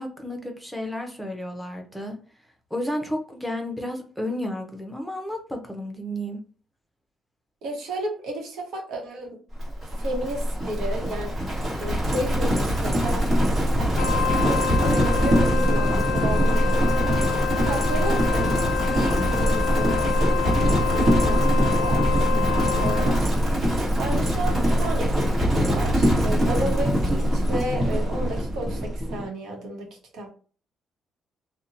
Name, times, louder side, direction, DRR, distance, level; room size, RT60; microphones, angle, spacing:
voice 1, 0.0-2.2 2.7-6.4 22.3-22.8, left 1 dB, 5° left, 3 dB, 0.7 m, -32 dB
voice 2, 7.6-9.4 10.0-11.3 11.8-13.3 13.8-17.2 17.6-20.0 20.9-22.1 22.8-23.1 24.0-25.1 25.4-30.3, right 1 dB, 80° right, 1 dB, 0.9 m, -32 dB
Livestock farm animals working animals, 9.6-29.3, equal, 40° right, 1.2 m, -23 dB
Wind instrument woodwind instrument, 13.9-23.2, left 8 dB, 90° left, 0.3 m, -28 dB
2.8 x 2.1 x 2.7 m, 0.40 s
cardioid pair, 90°, 0 cm